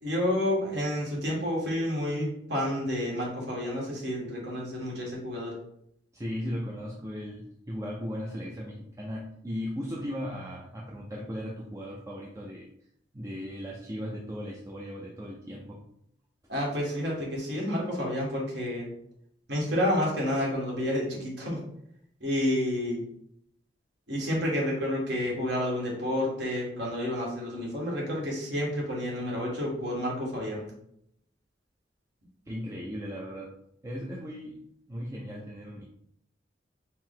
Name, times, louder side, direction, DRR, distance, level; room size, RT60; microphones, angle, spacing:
voice 1, 0.0-5.5 16.5-18.9 19.5-21.6 22.2-23.0 24.1-30.6, left 1 dB, 70° right, -3 dB, 1.5 m, -30 dB
voice 2, 6.1-12.7 13.1-15.8 32.5-33.5 33.8-34.6 34.9-35.9, equal, 15° right, -3 dB, 0.4 m, -37 dB
4.5 x 2.0 x 3.8 m, 0.74 s
head